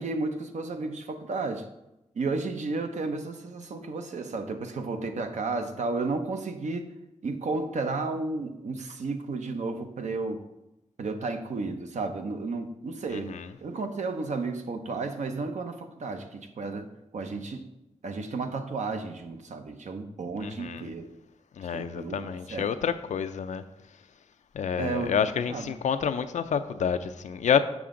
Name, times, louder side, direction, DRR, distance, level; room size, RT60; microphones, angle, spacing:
voice 1, 0.0-1.7 2.2-6.9 7.2-10.4 11.0-16.9 17.1-17.7 18.0-21.1 21.7-22.7 24.8-25.1 25.5-25.7, right 3 dB, 80° right, 0.8 m, -33 dB
voice 2, 13.1-13.5 20.4-20.9 21.6-23.6 24.5-27.6, left 7 dB, 90° left, 0.5 m, -28 dB
7.2 x 6.0 x 3.7 m
cardioid pair, 65°, 12 cm